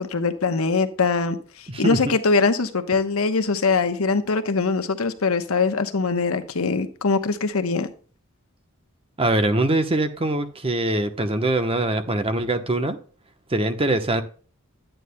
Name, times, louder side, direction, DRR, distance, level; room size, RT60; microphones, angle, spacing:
voice 1, 0.0-7.9, left 4 dB, 75° left, 8 dB, 1.0 m, -22 dB
voice 2, 1.7-2.1 9.2-13.0 13.5-14.2, right 2 dB, 25° right, 8 dB, 0.9 m, -23 dB
11.0 x 9.0 x 2.2 m, 0.41 s
head